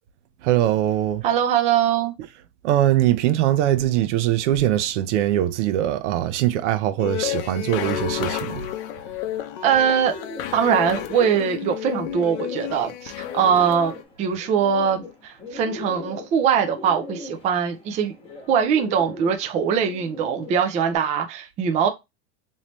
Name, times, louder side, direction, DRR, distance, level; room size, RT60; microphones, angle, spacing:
voice 1, 0.4-1.2 2.6-8.6, right 12 dB, 80° right, 0.7 m, -21 dB
voice 2, 1.2-2.1 9.6-10.1 10.5-18.1 18.5-21.9, right 7 dB, 20° right, 0.4 m, -22 dB
sound 1, 7.0-14.0, left 12 dB, 55° left, 0.6 m, -31 dB
Bird, 9.3-21.0, left 3 dB, 15° left, 1.1 m, -39 dB
3.2 x 2.8 x 3.0 m
supercardioid pair, 155°, 35 cm